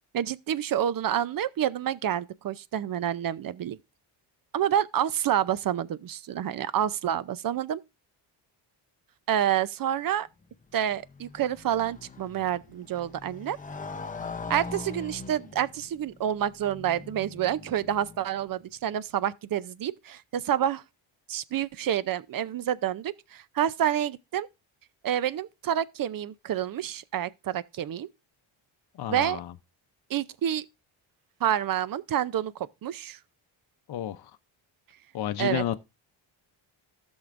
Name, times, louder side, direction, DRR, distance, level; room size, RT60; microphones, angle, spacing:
voice 1, 0.1-3.8 4.5-7.8 9.3-10.3 10.7-13.6 14.5-20.8 21.3-24.5 25.0-28.1 29.1-29.4 30.1-30.6 31.4-33.2 35.4-35.6, right 10 dB, 45° right, 0.6 m, -28 dB
Motorcycle, 10.4-18.6, left 4 dB, 15° left, 0.7 m, -42 dB
voice 2, 28.9-29.5 33.9-34.3 35.1-35.8, left 11 dB, 50° left, 0.7 m, -31 dB
15.0 x 6.3 x 2.5 m
cardioid pair, 105°, 49 cm